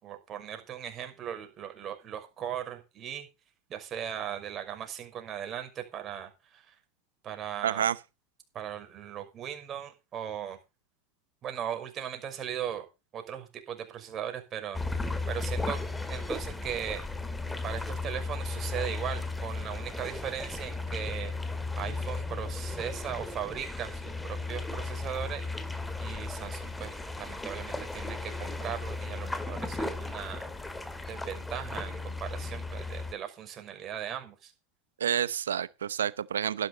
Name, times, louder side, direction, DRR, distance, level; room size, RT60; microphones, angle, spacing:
voice 1, 0.0-3.3 3.7-6.7 7.2-7.9 8.5-10.6 11.4-12.9 13.1-15.8 16.1-17.0 17.6-21.3 21.7-25.4 26.0-30.4 31.1-34.5, right 9 dB, 40° right, 5.7 m, -38 dB
voice 2, 7.6-8.0 35.0-36.7, right 9 dB, 90° right, 0.8 m, -29 dB
sound 1, 14.7-33.1, left 3 dB, 10° left, 2.4 m, -35 dB
13.5 x 12.0 x 4.0 m
hypercardioid pair, 95°, 0 cm